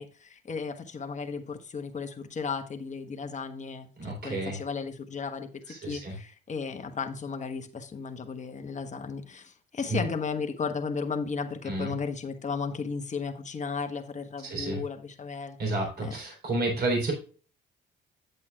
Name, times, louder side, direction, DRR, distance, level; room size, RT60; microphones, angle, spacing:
voice 1, 0.0-15.7 16.0-16.2, left 5 dB, 35° left, 1.2 m, -35 dB
voice 2, 4.0-4.6 5.7-6.2 9.9-10.0 11.7-11.9 14.4-14.8 15.6-17.1, right 2 dB, 55° right, 3.6 m, -30 dB
9.0 x 8.2 x 2.3 m
cardioid pair, 90°, 20 cm